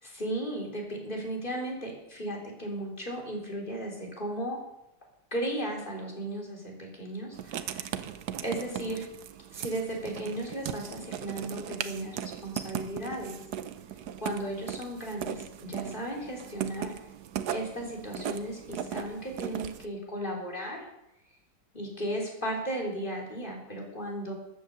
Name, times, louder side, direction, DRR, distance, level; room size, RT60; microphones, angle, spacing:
voice 1, 0.0-4.6 5.3-7.9 8.4-9.0 9.5-13.4 14.2-16.9 17.5-20.8 21.7-24.3, right 1 dB, 30° left, -1 dB, 3.9 m, -35 dB
Writing, 7.3-19.9, right 9 dB, 80° right, 1.3 m, -38 dB
14.0 x 10.5 x 6.8 m, 0.87 s
omnidirectional pair, 1.7 m